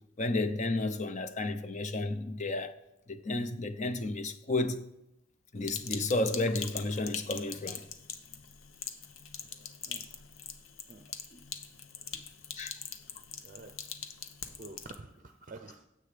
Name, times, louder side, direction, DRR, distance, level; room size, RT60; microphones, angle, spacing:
voice 1, 0.2-2.8 3.1-4.8 5.5-7.8 11.3-11.4 12.6-12.8, left 2 dB, 35° left, 0.7 m, -32 dB
Sink (filling or washing), 5.6-14.9, left 7 dB, 85° left, 0.9 m, -43 dB
voice 2, 13.4-13.8 14.6-15.9, right 3 dB, 40° right, 0.6 m, -48 dB
9.9 x 7.7 x 5.1 m
head